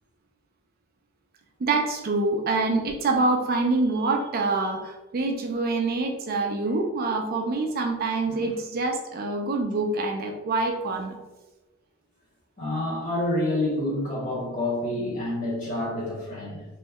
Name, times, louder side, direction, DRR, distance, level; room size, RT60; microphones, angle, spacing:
voice 1, 1.6-11.2, right 3 dB, 40° right, 0.3 m, -26 dB
voice 2, 12.6-16.7, left 1 dB, 35° left, 1.0 m, -28 dB
3.0 x 2.1 x 3.5 m
head